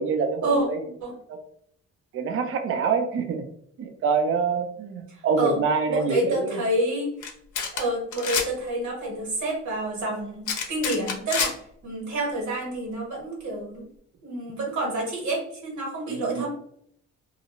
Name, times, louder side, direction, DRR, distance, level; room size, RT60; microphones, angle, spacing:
voice 1, 0.0-0.8 1.3-1.4 2.1-3.5 3.8-6.6 16.1-16.5, right 5 dB, 45° right, 6 dB, 0.4 m, -26 dB
voice 2, 5.9-7.1 7.7-11.5 11.8-13.9 14.2-16.5, right 1 dB, 70° right, -2 dB, 1.3 m, -28 dB
sound 1, 7.2-7.3 7.5-7.8 8.1-8.5 10.5-11.5, left 6 dB, 75° left, 0.6 m, -27 dB
2.4 x 2.0 x 2.9 m, 0.68 s
cardioid pair, 90°, 30 cm